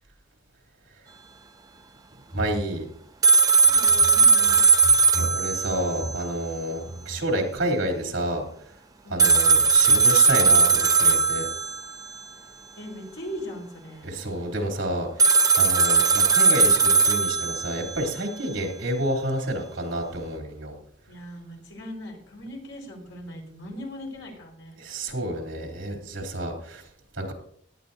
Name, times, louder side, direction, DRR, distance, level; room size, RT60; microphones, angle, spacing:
voice 1, 2.3-2.9 5.1-8.8 9.1-11.5 14.0-20.7 24.8-27.3, right 1 dB, 70° right, 1 dB, 3.3 m, -29 dB
sound 1, 3.2-6.3 6.6-6.7 9.2-12.2 15.2-18.2, right 5 dB, 20° right, 0.6 m, -19 dB
voice 2, 3.6-6.1 6.7-7.3 9.0-9.6 9.9-10.0 12.7-14.2 21.1-24.8, equal, 75° left, 0 dB, 5.1 m, -38 dB
17.5 x 11.5 x 2.7 m, 0.65 s
head